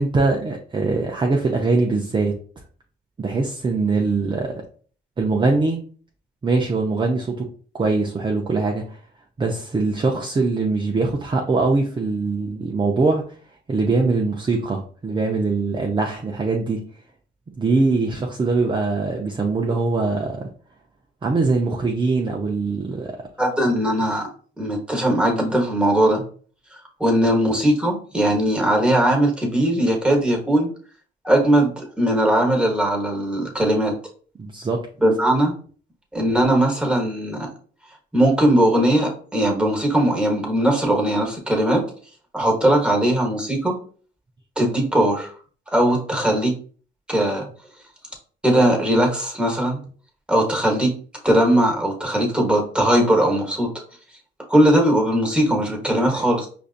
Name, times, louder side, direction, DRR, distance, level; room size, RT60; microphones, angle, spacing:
voice 1, 0.0-2.3 3.2-4.5 5.2-5.8 6.4-7.5 7.7-9.0 9.4-13.2 13.7-16.8 17.6-20.5 21.2-23.2 34.4-34.9 55.9-56.3, right 3 dB, 25° right, 0 dB, 0.6 m, -22 dB
voice 2, 23.4-24.3 24.6-26.2 27.0-30.7 31.2-33.9 35.0-35.5 36.1-37.5 38.1-41.8 42.3-43.7 44.6-45.3 45.7-46.6 47.1-47.5 48.4-49.8 50.3-51.0 51.2-53.7 54.5-56.5, right 1 dB, 5° right, 0 dB, 1.3 m, -19 dB
5.0 x 2.5 x 2.5 m, 0.43 s
cardioid pair, 90°, 20 cm